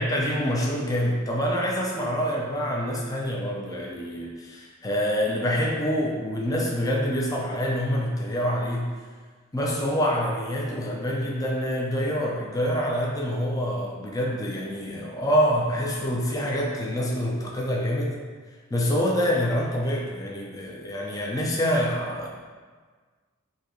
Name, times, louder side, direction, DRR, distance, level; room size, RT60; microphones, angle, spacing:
voice 1, 0.0-8.9 9.5-18.2 18.7-22.3, equal, 15° left, -2 dB, 0.5 m, -26 dB
3.8 x 2.8 x 4.5 m, 1.5 s
head